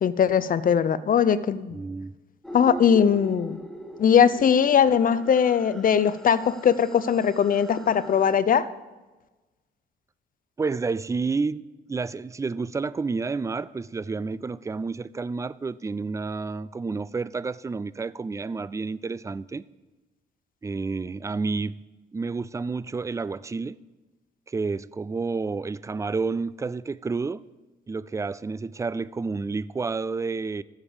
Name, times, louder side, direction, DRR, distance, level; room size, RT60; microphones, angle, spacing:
voice 1, 0.0-1.8 2.5-3.6 4.0-8.7, left 7 dB, 45° left, 0.6 m, -20 dB
voice 2, 1.7-2.1 10.6-19.6 20.6-21.8 22.1-23.8 24.5-27.4 27.9-30.6, right 4 dB, 15° right, 0.3 m, -30 dB
sound 1, 2.4-8.4, equal, ahead, 1.2 m, -42 dB
14.0 x 7.2 x 5.0 m
cardioid pair, 90°, 20 cm